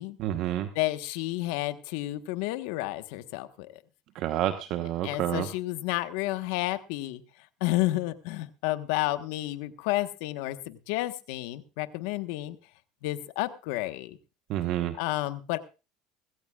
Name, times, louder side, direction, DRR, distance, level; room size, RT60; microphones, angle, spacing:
voice 1, 0.2-0.7 4.1-5.5 14.5-14.9, right 12 dB, 65° right, 8 dB, 1.1 m, -29 dB
voice 2, 0.7-3.8 5.0-7.2 7.6-12.6 13.0-14.2 15.0-15.6, left 17 dB, 80° left, 10 dB, 1.2 m, -31 dB
20.5 x 16.0 x 2.4 m, 0.31 s
supercardioid pair, 100°, 0 cm